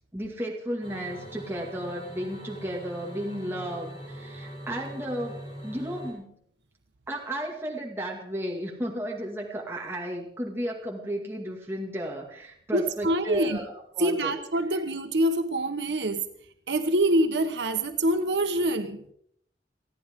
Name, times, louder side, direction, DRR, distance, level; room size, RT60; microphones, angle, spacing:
voice 1, 0.1-5.4 5.6-6.3 7.1-13.6 13.9-14.3 14.7-14.8, right 1 dB, 15° right, -1 dB, 2.1 m, -34 dB
sound 1, 0.8-6.1, equal, 30° left, 7.4 m, -42 dB
voice 2, 12.7-13.6 14.0-16.2 16.7-19.0, right 1 dB, 80° right, 7 dB, 1.2 m, -25 dB
29.5 x 10.5 x 3.7 m, 0.69 s
head